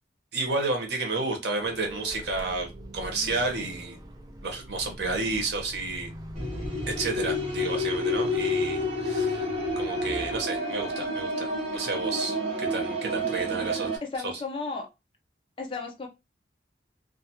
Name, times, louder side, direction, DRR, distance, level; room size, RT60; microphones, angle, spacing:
voice 1, 0.3-4.0 4.4-6.1 6.9-9.5 9.8-13.9 14.2-14.3, right 3 dB, 65° right, 3 dB, 0.9 m, -31 dB
sound 1, 1.6-10.4, right 1 dB, 20° right, 0.4 m, -42 dB
sound 2, 6.3-14.0, left 1 dB, 35° right, 0.9 m, -29 dB
voice 2, 14.0-14.9 15.6-16.1, left 4 dB, 30° left, 2 dB, 0.6 m, -34 dB
2.5 x 2.4 x 2.7 m, 0.24 s
head